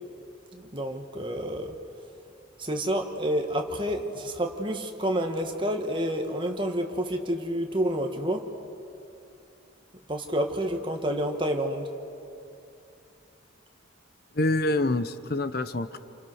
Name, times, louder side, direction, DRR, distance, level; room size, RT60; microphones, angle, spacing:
voice 1, 0.5-1.8 2.6-8.5 10.1-11.9, equal, 25° right, 3 dB, 2.0 m, -29 dB
voice 2, 14.4-16.0, left 2 dB, 50° left, 11 dB, 0.8 m, -26 dB
29.5 x 28.5 x 6.5 m, 2.7 s
head